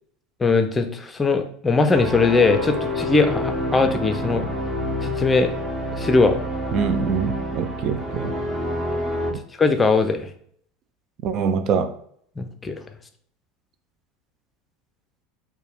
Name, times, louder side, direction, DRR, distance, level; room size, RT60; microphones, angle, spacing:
voice 1, 0.4-4.4 5.0-5.5 6.0-6.4 9.6-10.3 12.4-12.8, left 3 dB, 20° left, 7 dB, 0.5 m, -20 dB
sound 1, 1.9-9.3, equal, 20° right, 0.8 m, -28 dB
voice 2, 6.7-8.4 9.3-9.4 11.2-11.9, right 6 dB, 45° right, 10 dB, 0.3 m, -24 dB
4.3 x 2.2 x 3.4 m, 0.63 s
figure-of-eight pair, 75°, 0 cm